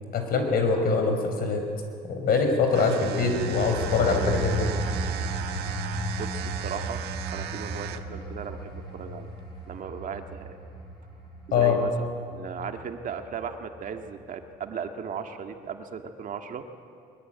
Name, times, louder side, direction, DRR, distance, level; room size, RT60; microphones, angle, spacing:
voice 1, 0.1-1.6 2.0-4.7 11.5-11.8, left 4 dB, 60° left, 5 dB, 5.4 m, -23 dB
sound 1, 2.7-8.2, right 11 dB, 80° right, 1.2 m, -37 dB
sound 2, 3.1-13.5 13.9-14.2, right 1 dB, 30° left, 7.8 m, -35 dB
voice 2, 6.2-7.0 7.3-9.3 9.7-10.6 11.5-16.7, right 6 dB, 50° right, 5 dB, 1.9 m, -37 dB
22.5 x 22.5 x 9.5 m, 2.4 s
cardioid pair, 110°, 17 cm